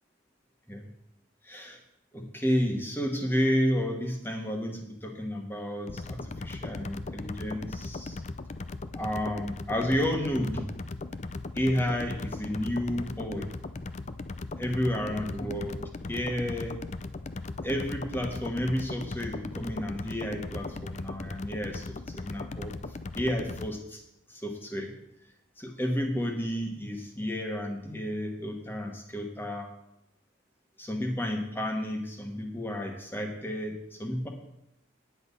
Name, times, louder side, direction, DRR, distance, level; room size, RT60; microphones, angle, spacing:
voice 1, 1.4-1.8 2.1-8.2 8.9-10.7 11.5-13.5 14.6-16.8 17.6-22.7 23.1-24.0 24.3-24.9 25.6-29.7 30.8-34.3, equal, 10° left, 2 dB, 1.4 m, -31 dB
sound 1, 5.9-23.7, left 3 dB, 35° left, 0.4 m, -38 dB
9.9 x 8.4 x 5.5 m, 0.82 s
head